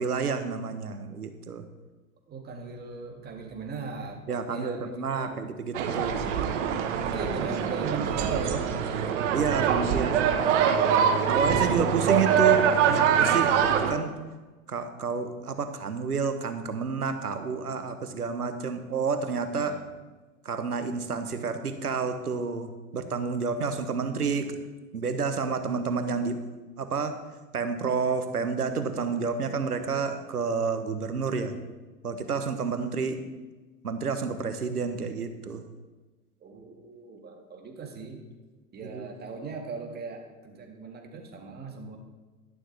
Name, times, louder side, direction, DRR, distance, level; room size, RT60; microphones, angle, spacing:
voice 1, 0.0-1.6 4.3-6.3 9.3-10.3 11.3-14.1 14.7-19.8 20.4-24.6 24.9-26.4 26.8-27.2 27.5-31.5 32.0-33.2 33.8-35.6 38.8-39.1, right 5 dB, 85° right, 9 dB, 1.2 m, -30 dB
voice 2, 2.3-5.3 7.0-9.1 9.6-10.1 11.2-11.9 19.5-19.9 36.4-38.2 38.7-42.0, right 5 dB, 20° right, 2 dB, 2.0 m, -38 dB
sound 1, 5.7-13.9, right 8 dB, 50° right, 1.3 m, -24 dB
12.0 x 11.0 x 3.4 m, 1.2 s
figure-of-eight pair, 95°, 44 cm